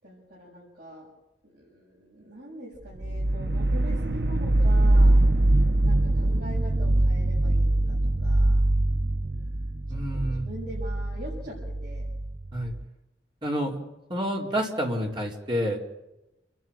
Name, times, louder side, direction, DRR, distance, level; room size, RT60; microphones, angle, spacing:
voice 1, 0.0-1.1 1.4-8.6 9.1-12.1, right 1 dB, 50° right, -6 dB, 7.3 m, -43 dB
sound 1, 3.0-12.8, right 1 dB, 65° right, 0.8 m, -23 dB
voice 2, 9.9-10.5 12.5-12.7 13.4-13.8 14.1-15.8, equal, 25° right, -1 dB, 4.2 m, -28 dB
30.0 x 11.0 x 8.9 m, 0.95 s
head